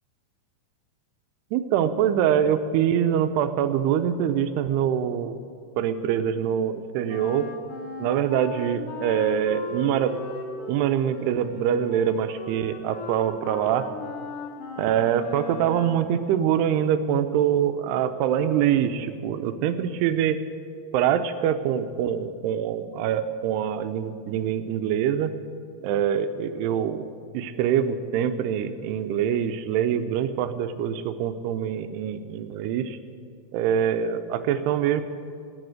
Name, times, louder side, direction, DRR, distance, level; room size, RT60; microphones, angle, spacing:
voice 1, 1.5-5.4 5.8-7.5 8.0-10.2 10.7-13.9 14.8-20.4 20.9-25.3 25.8-27.1 27.3-33.0 33.5-35.0, right 9 dB, 85° right, 10 dB, 2.7 m, -24 dB
Wind instrument woodwind instrument, 7.1-16.1, left 4 dB, 85° left, 3.8 m, -38 dB
17.0 x 7.0 x 9.5 m, 2.3 s
omnidirectional pair, 4.7 m